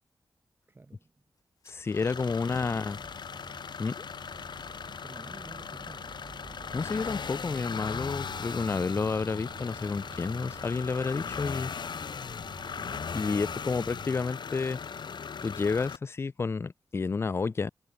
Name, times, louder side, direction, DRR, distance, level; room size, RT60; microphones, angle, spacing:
voice 1, 0.7-1.1 2.1-3.2 4.9-6.2, right 2 dB, 30° right, 2.2 m, -52 dB
sound 1, 1.4-7.3, left 5 dB, 50° left, 2.3 m, -58 dB
voice 2, 1.7-3.0 3.8-3.9 6.7-11.7 13.1-14.8 15.4-17.7, left 4 dB, 35° left, 0.4 m, -30 dB
sound 2, 1.9-16.0, left 6 dB, 75° left, 1.7 m, -38 dB
sound 3, 2.0-14.1, right 5 dB, 55° right, 4.2 m, -50 dB
wide cardioid pair, 105°, 8 cm